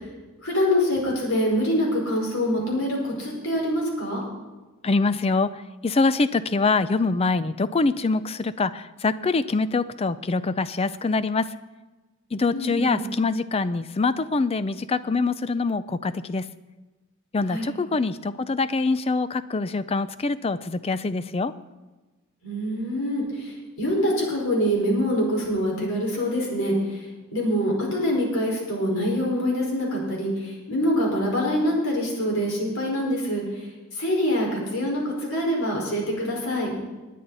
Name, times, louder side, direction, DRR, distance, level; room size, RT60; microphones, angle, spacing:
voice 1, 0.4-4.2 12.5-13.0 17.5-17.7 22.4-27.0 27.3-33.4 34.0-36.8, equal, 70° left, -2 dB, 4.8 m, -25 dB
voice 2, 4.8-11.5 12.3-16.4 17.3-21.5, left 3 dB, 25° left, 14 dB, 0.4 m, -24 dB
20.0 x 9.3 x 4.1 m, 1.2 s
head